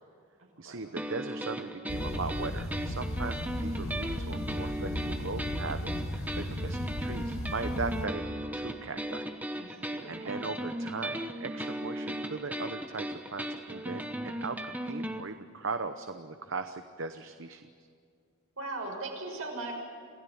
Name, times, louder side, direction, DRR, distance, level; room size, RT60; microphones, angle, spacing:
voice 1, 0.6-9.3 9.6-9.7 10.1-17.7, right 4 dB, 60° right, 8 dB, 0.9 m, -39 dB
sound 1, 1.0-15.2, right 1 dB, 5° right, 1.0 m, -37 dB
sound 2, 1.9-8.1, left 1 dB, 75° left, 2.0 m, -36 dB
voice 2, 9.5-10.4 18.6-19.8, right 2 dB, 75° right, 0 dB, 6.2 m, -39 dB
27.5 x 16.5 x 8.7 m, 2.2 s
head